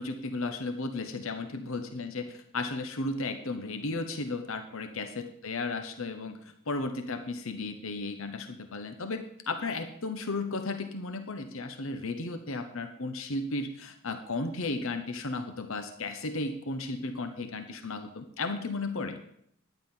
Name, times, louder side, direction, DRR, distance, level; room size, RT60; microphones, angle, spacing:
voice 1, 0.0-19.2, left 3 dB, 70° left, 7 dB, 1.0 m, -34 dB
11.0 x 9.8 x 5.5 m, 0.68 s
head